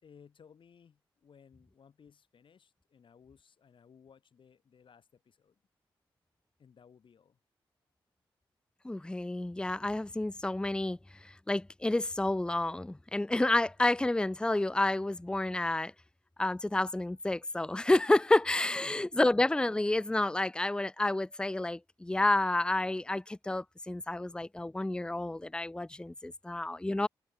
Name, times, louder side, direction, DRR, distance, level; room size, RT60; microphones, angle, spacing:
voice 1, 0.0-5.6 6.6-7.4 18.8-19.1, left 7 dB, 65° left, 3.8 m, -59 dB
voice 2, 8.8-15.9 16.4-27.1, left 2 dB, 10° left, 0.5 m, -30 dB
cardioid pair, 55°, 9 cm